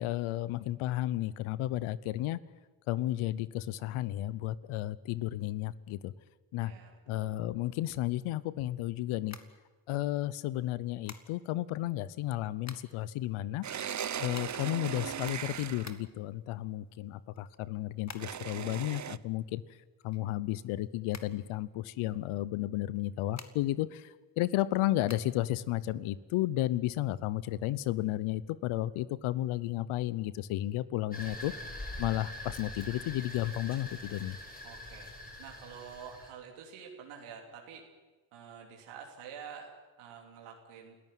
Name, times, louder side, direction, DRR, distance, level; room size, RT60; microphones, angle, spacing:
voice 1, 0.0-2.4 2.9-6.1 6.5-6.7 7.1-9.4 9.9-13.6 14.2-19.6 20.0-31.5 32.0-34.4, left 15 dB, 80° left, 18 dB, 0.9 m, -33 dB
voice 2, 6.6-7.3 34.6-35.1 35.4-37.9 38.3-41.0, right 7 dB, 85° right, 1 dB, 3.4 m, -48 dB
sound 1, 9.3-10.2 11.0-11.6 12.3-13.1 13.4-13.5 13.7-16.3 16.7-18.6 18.9-20.7 21.1-22.1 22.9-23.9 24.3-25.2, left 5 dB, 35° left, 2.2 m, -50 dB
sound 2, 13.6-16.0 18.2-19.2, right 9 dB, 35° right, 0.8 m, -38 dB
sound 3, 31.1-36.3, left 1 dB, 20° left, 7.8 m, -44 dB
27.5 x 14.5 x 9.2 m, 1.3 s
supercardioid pair, 60°, 49 cm